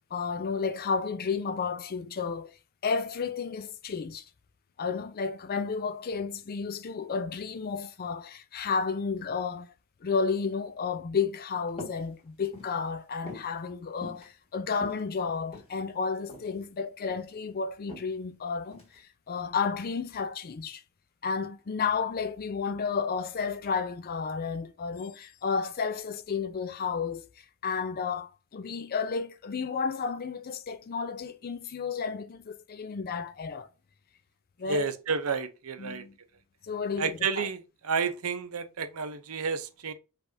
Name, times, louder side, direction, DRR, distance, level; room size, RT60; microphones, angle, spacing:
voice 1, 0.1-2.6 2.8-4.3 4.8-9.7 10.0-20.8 21.2-27.3 27.6-33.7 34.6-34.9 35.8-36.1 36.6-37.5, left 5 dB, 45° left, 0.4 m, -32 dB
sound 1, 11.7-12.0 12.4-12.8 13.3-13.5 14.0-14.3 14.7-15.8 16.3-16.5 16.9-17.3 17.9-18.1 18.7-19.0, left 2 dB, 25° left, 1.7 m, -43 dB
voice 2, 34.6-36.0 37.0-39.9, right 5 dB, 80° right, 0.7 m, -31 dB
4.9 x 3.4 x 2.7 m
head